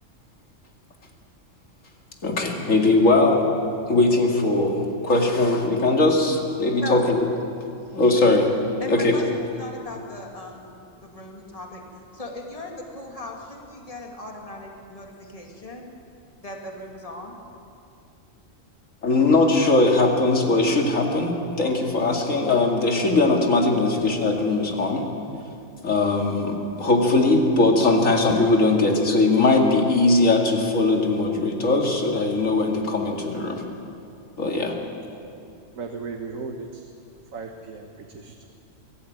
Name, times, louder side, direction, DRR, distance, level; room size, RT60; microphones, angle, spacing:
voice 1, 2.2-3.5 3.9-7.2 7.9-8.5 8.9-9.1 19.0-25.0 25.8-33.6 34.4-34.8, left 2 dB, 75° left, 1 dB, 2.7 m, -20 dB
voice 2, 8.8-10.7 11.0-11.8 12.1-15.9 16.4-17.4, left 1 dB, 25° left, 0 dB, 2.4 m, -37 dB
voice 3, 35.7-36.9 37.3-38.5, right 4 dB, 90° right, 3 dB, 1.7 m, -36 dB
22.5 x 14.5 x 9.0 m, 2.6 s
omnidirectional pair, 1.4 m